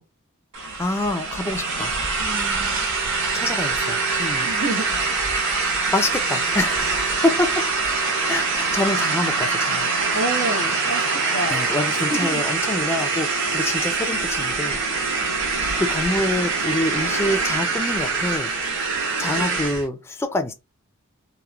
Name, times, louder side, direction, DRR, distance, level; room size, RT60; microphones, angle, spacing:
sound 1, 0.5-19.9, right 4 dB, 60° right, 0.8 m, -24 dB
voice 1, 0.8-1.9 3.3-4.5 5.9-7.6 8.3-9.9 11.5-14.8 15.8-18.5 19.2-20.5, left 2 dB, 10° left, 0.3 m, -26 dB
voice 2, 2.2-2.8 4.4-5.0 10.1-11.6 11.9-12.5 19.4-19.6, right 1 dB, 90° right, 1.0 m, -29 dB
2.9 x 2.0 x 2.3 m
head